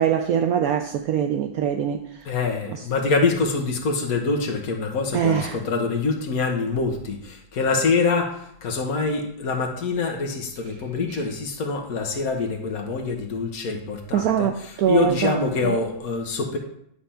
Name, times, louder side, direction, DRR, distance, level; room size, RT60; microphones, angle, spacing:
voice 1, 0.0-2.0 5.1-5.6 11.1-11.2 14.1-15.8, right 9 dB, 80° right, 0.8 m, -23 dB
voice 2, 2.2-16.6, left 4 dB, 55° left, 1.4 m, -25 dB
10.0 x 3.4 x 5.7 m
omnidirectional pair, 2.1 m